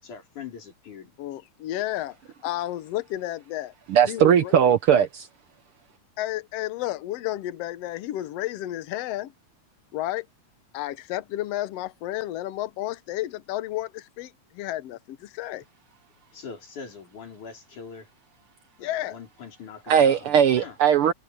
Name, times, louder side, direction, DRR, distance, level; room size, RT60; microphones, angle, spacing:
voice 1, 0.0-1.2 16.3-18.1 18.8-20.8, left 6 dB, 85° left, 6.0 m, -42 dB
voice 2, 1.2-2.2 2.4-3.7 4.1-4.5 6.2-9.3 9.9-10.3 10.7-15.6 18.8-19.2, left 14 dB, 65° left, 1.8 m, -31 dB
voice 3, 3.9-5.3 19.9-21.1, right 8 dB, 75° right, 1.3 m, -19 dB
omnidirectional pair, 3.4 m